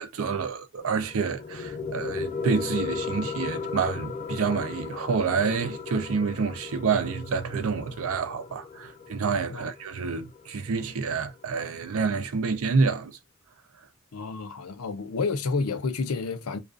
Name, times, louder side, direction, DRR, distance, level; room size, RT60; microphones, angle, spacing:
voice 1, 0.0-13.2, right 5 dB, 65° right, 0.5 m, -28 dB
sound 1, 0.8-11.8, left 5 dB, 35° left, 0.4 m, -36 dB
voice 2, 14.1-16.6, left 4 dB, 85° left, 0.6 m, -30 dB
2.4 x 2.3 x 2.4 m
head